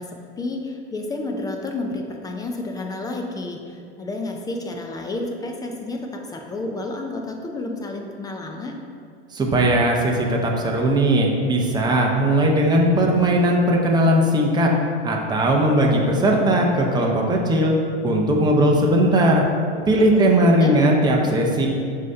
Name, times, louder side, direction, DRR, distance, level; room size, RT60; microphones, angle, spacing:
voice 1, 0.0-8.8 20.0-20.7, left 2 dB, 10° left, 2 dB, 0.3 m, -31 dB
voice 2, 9.3-14.7 15.0-17.7 18.0-19.4 19.9-21.7, right 1 dB, 10° right, -1 dB, 0.7 m, -18 dB
6.2 x 2.9 x 5.3 m, 2.3 s
hypercardioid pair, 110°, 35 cm